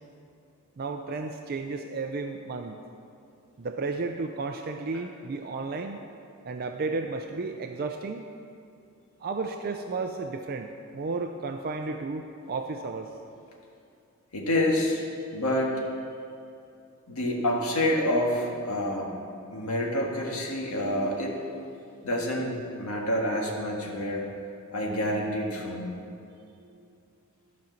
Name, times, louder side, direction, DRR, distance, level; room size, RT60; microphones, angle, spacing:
voice 1, 0.8-2.8 3.6-6.0 6.4-8.3 9.2-13.1, right 3 dB, 45° right, 5 dB, 0.4 m, -33 dB
voice 2, 14.3-15.0 15.3-15.8 17.1-19.1 19.5-21.4 22.0-24.2 24.7-25.9, left 1 dB, 75° left, -1 dB, 1.8 m, -27 dB
12.0 x 5.2 x 7.0 m, 2.6 s
head